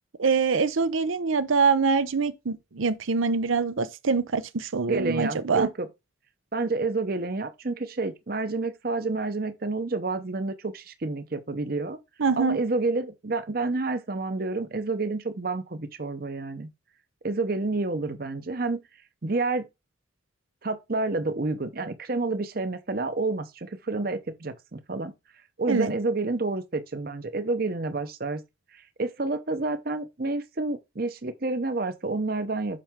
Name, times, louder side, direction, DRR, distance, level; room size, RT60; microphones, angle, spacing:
voice 1, 0.2-5.7 12.2-12.6 25.7-25.9, right 5 dB, 85° right, 0.7 m, -24 dB
voice 2, 4.9-5.9 6.5-12.0 12.4-16.7 17.2-18.8 19.2-19.7 20.6-25.1 25.6-28.4 29.0-32.8, right 3 dB, 45° right, 0.8 m, -29 dB
7.5 x 5.7 x 3.6 m
head